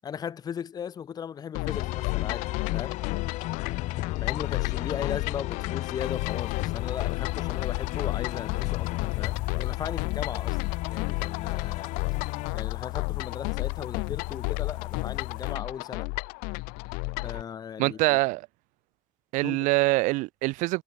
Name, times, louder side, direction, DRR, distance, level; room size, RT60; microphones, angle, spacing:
voice 1, 0.0-2.5 2.7-3.0 4.2-10.6 10.9-11.9 12.5-16.1 17.2-18.2 19.4-19.6, left 8 dB, 30° left, 7.2 m, -37 dB
sound 1, 1.5-17.4, left 31 dB, 90° left, 0.5 m, -33 dB
sound 2, 1.6-12.5, left 18 dB, 55° left, 1.7 m, -33 dB
sound 3, 6.0-15.6, left 24 dB, 70° left, 2.3 m, -38 dB
voice 2, 17.8-18.5 19.3-20.8, right 22 dB, 65° right, 0.7 m, -24 dB
cardioid pair, 175°, 14 cm